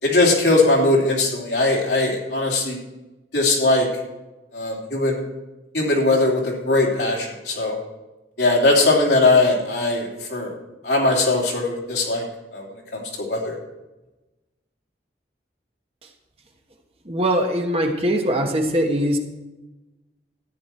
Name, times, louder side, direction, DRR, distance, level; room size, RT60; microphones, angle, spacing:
voice 1, 0.0-2.8 3.3-3.9 4.5-5.2 5.7-7.8 8.4-10.5 10.8-12.2 12.5-12.6 12.9-13.5, left 2 dB, 70° left, -2 dB, 3.2 m, -20 dB
voice 2, 17.0-19.2, equal, 35° right, 3 dB, 1.2 m, -21 dB
13.5 x 9.4 x 4.4 m, 1.1 s
head